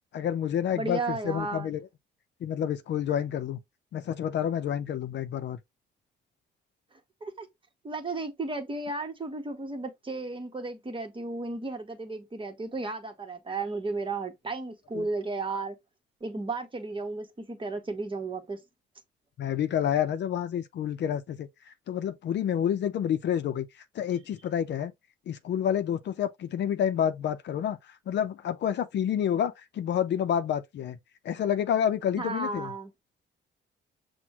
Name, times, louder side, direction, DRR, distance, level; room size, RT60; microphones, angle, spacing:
voice 1, 0.1-1.8 2.4-3.6 3.9-5.6 14.9-15.1 19.4-21.5 21.9-23.7 23.9-24.9 25.3-31.0 31.2-32.7, left 9 dB, 60° left, 0.6 m, -29 dB
voice 2, 0.7-1.7 7.2-7.5 7.8-15.7 16.2-18.6 32.2-32.9, right 3 dB, 25° right, 1.1 m, -34 dB
6.0 x 2.2 x 2.9 m
cardioid pair, 90°, 20 cm